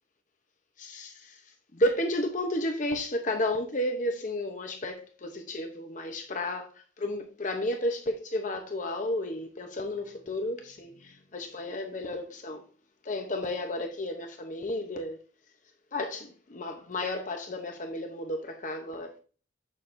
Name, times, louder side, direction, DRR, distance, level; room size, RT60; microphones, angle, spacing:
voice 1, 0.8-1.4 1.7-6.7 7.0-12.6 13.0-15.2 15.9-19.2, left 1 dB, 45° left, 0.8 m, -32 dB
7.2 x 6.4 x 2.6 m
head